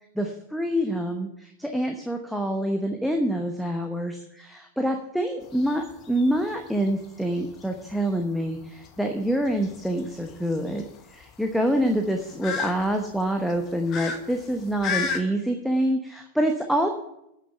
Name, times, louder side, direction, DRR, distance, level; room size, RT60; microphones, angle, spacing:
voice 1, 0.2-10.8 11.1-16.9, equal, ahead, 3 dB, 1.0 m, -26 dB
sound 1, 5.4-15.2, left 5 dB, 35° left, 1.3 m, -36 dB
9.2 x 6.7 x 8.6 m, 0.81 s
figure-of-eight pair, 90°, 0 cm